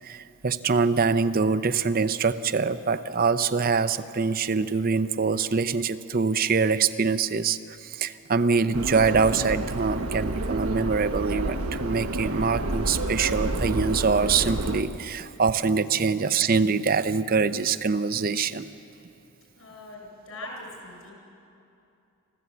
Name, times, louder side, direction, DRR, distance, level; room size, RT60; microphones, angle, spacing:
voice 1, 0.0-18.7, right 5 dB, 40° right, 12 dB, 0.6 m, -24 dB
Subway metro underground, 8.7-14.8, right 1 dB, 80° right, 1.2 m, -30 dB
voice 2, 19.5-21.1, left 2 dB, 70° left, -1 dB, 7.1 m, -42 dB
26.0 x 14.0 x 8.4 m, 2.7 s
head